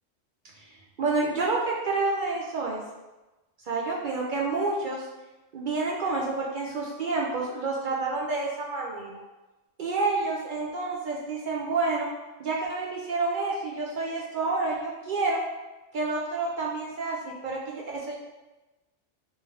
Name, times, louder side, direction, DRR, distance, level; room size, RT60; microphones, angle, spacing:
voice 1, 0.6-2.8 3.7-5.1 5.5-9.2 9.8-12.1 12.4-15.4 15.9-18.1, right 3 dB, 60° right, -2 dB, 0.5 m, -29 dB
3.3 x 3.1 x 3.3 m, 1.1 s
omnidirectional pair, 1.3 m